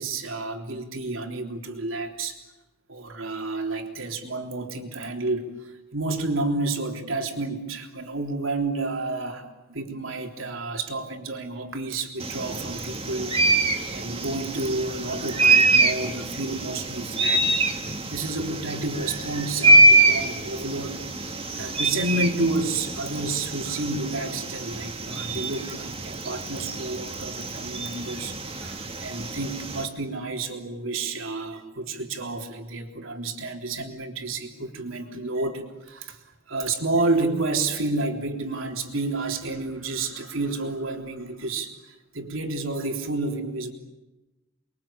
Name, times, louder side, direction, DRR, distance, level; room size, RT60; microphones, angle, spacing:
voice 1, 0.0-2.4 2.9-17.6 18.1-36.2 36.5-43.7, right 2 dB, 75° right, 3 dB, 3.6 m, -30 dB
sound 1, 12.2-29.8, right 2 dB, 30° right, 2.4 m, -24 dB
29.5 x 23.0 x 8.8 m, 1.0 s
head